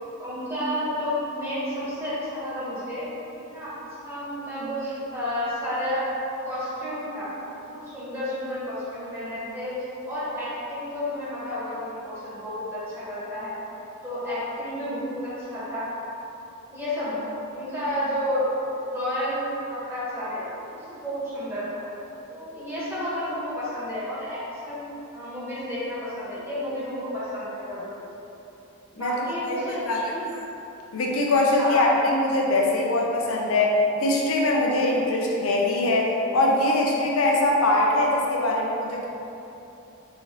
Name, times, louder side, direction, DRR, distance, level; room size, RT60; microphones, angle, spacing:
voice 1, 0.2-3.1 3.4-3.7 4.0-6.1 6.4-7.3 7.7-9.8 10.0-13.6 14.0-15.9 16.7-17.2 17.5-18.5 18.9-19.4 19.7-21.8 22.3-24.4 24.6-27.9 28.9-30.2 31.6-31.8, left 1 dB, 10° right, -12 dB, 1.4 m, -31 dB
voice 2, 29.5-30.0 30.9-39.1, left 2 dB, 70° left, -2 dB, 0.5 m, -22 dB
3.9 x 3.1 x 3.8 m, 3.0 s
head